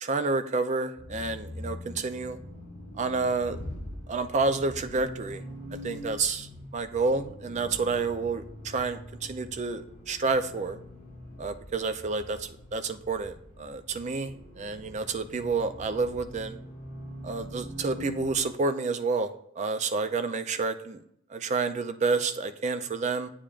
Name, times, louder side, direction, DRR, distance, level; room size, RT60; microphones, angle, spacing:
voice 1, 0.0-2.4 3.0-3.6 4.1-5.4 5.8-10.8 11.4-16.6 17.2-21.0 21.3-23.3, right 4 dB, 30° right, 9 dB, 0.4 m, -29 dB
Accelerating revving vroom, 1.0-18.4, left 1 dB, 35° left, 2.8 m, -43 dB
8.7 x 6.8 x 2.4 m, 0.74 s
head